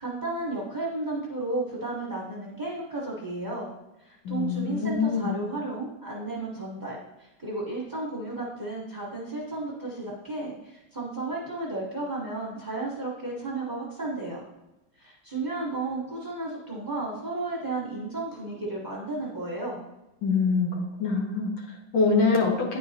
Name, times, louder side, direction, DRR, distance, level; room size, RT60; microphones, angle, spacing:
voice 1, 0.0-3.7 4.0-14.5 15.0-19.8, right 2 dB, 30° right, -4 dB, 1.0 m, -33 dB
voice 2, 4.2-5.4 20.2-22.8, left 4 dB, 70° left, -1 dB, 1.8 m, -25 dB
9.5 x 4.7 x 2.8 m, 0.97 s
omnidirectional pair, 2.2 m